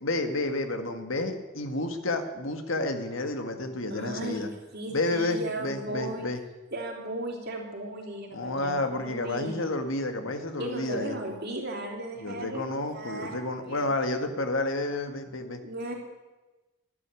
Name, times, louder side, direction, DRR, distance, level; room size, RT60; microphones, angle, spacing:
voice 1, 0.0-4.5 4.9-6.4 8.3-11.2 12.2-15.6, left 2 dB, 75° left, 7 dB, 1.7 m, -30 dB
voice 2, 3.9-4.5 4.7-6.3 6.7-9.7 10.6-13.9 15.6-15.9, right 1 dB, 55° right, 0 dB, 3.4 m, -36 dB
12.5 x 12.0 x 8.4 m, 1.1 s
head